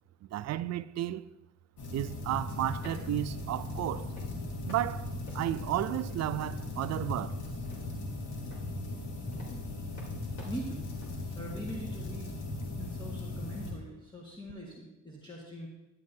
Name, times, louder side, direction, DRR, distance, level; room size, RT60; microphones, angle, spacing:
voice 1, 0.3-1.3 1.9-4.1 4.7-5.1 5.3-7.4, right 13 dB, 60° right, 0.5 m, -33 dB
sound 1, 1.8-13.7, left 2 dB, 75° left, 2.2 m, -38 dB
sound 2, 2.8-3.2 3.5-3.9 4.1-4.9 5.1-6.2 6.5-6.8 7.1-8.1 8.5-11.4, left 2 dB, 55° left, 3.3 m, -51 dB
voice 2, 10.4-10.8 11.3-12.4 12.8-15.7, equal, 15° left, 1.7 m, -42 dB
11.5 x 10.5 x 2.8 m
cardioid pair, 90°, 30 cm